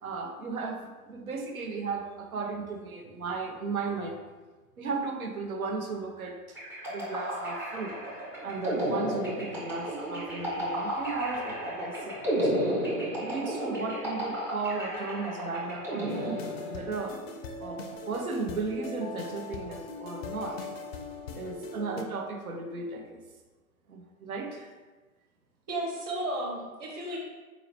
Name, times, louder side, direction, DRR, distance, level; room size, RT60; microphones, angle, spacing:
voice 1, 0.0-4.2 4.8-6.6 6.9-7.9 8.4-12.2 12.4-12.6 13.2-17.2 17.6-20.7 21.3-23.2 23.9-24.7, right 4 dB, 80° right, 3 dB, 0.7 m, -35 dB
sound 1, 6.6-17.0, equal, 5° right, 0.4 m, -33 dB
sound 2, 16.1-22.0, left 3 dB, 45° left, 0.5 m, -40 dB
voice 2, 25.7-27.2, right 1 dB, 25° right, -3 dB, 0.9 m, -33 dB
4.1 x 2.8 x 2.9 m, 1.3 s
figure-of-eight pair, 105°, 43 cm